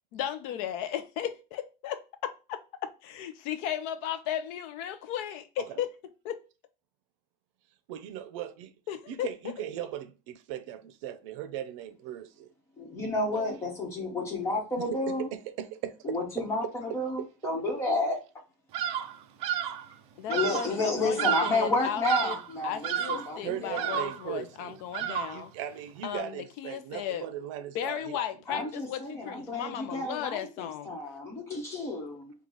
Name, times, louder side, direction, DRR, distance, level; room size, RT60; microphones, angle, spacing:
voice 1, 0.1-2.6 3.0-5.9 6.2-6.4 8.9-9.3 20.2-22.4 22.6-25.5 26.0-27.3 27.7-31.0, left 10 dB, 60° left, 0.6 m, -35 dB
voice 2, 7.9-8.7 9.1-12.5 13.3-13.5 15.2-16.2 23.4-28.2 28.5-28.7, right 11 dB, 85° right, 0.6 m, -38 dB
voice 3, 12.8-15.3 16.0-18.2 20.3-24.0 28.5-32.3, left 2 dB, 20° left, 1.3 m, -31 dB
Bird vocalization bird call bird song, 18.7-19.2 19.4-19.9 20.3-20.7 21.2-21.7 22.0-22.5 22.8-23.3 23.8-24.3 24.9-25.5, right 10 dB, 40° right, 0.4 m, -31 dB
4.6 x 2.4 x 3.8 m
cardioid pair, 175°, 15 cm